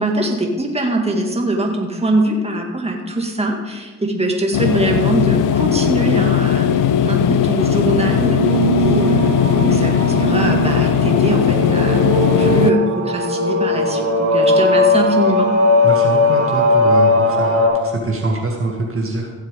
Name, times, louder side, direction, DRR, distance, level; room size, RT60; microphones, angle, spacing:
voice 1, 0.0-15.5, right 1 dB, 20° right, 1 dB, 2.3 m, -22 dB
sound 1, 4.5-12.7, left 9 dB, 75° left, 0.6 m, -17 dB
sound 2, 7.4-17.7, left 1 dB, 65° right, 4.0 m, -18 dB
voice 2, 15.8-19.3, right 3 dB, 45° right, -1 dB, 2.0 m, -24 dB
16.5 x 7.2 x 3.8 m, 1.4 s
supercardioid pair, 55°, 32 cm